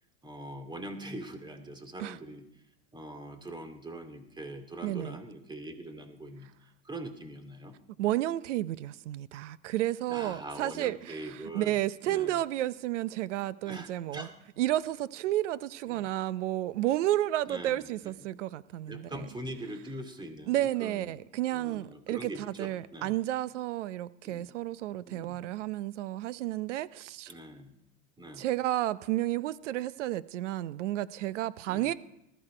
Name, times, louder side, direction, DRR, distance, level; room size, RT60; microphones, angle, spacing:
voice 1, 0.2-2.5 2.9-6.5 6.8-7.8 10.1-11.8 12.1-12.4 13.7-14.3 15.9-16.1 17.4-18.3 18.9-21.2 21.5-23.2 24.2-24.5 25.1-25.4 27.3-27.8 28.2-28.5 31.7-31.9, right 1 dB, 15° right, 2.4 m, -43 dB
voice 2, 4.8-5.2 8.0-14.3 14.6-19.2 20.5-27.3 28.4-31.9, right 14 dB, 85° right, 0.8 m, -31 dB
19.5 x 14.0 x 5.0 m
supercardioid pair, 110°, 35 cm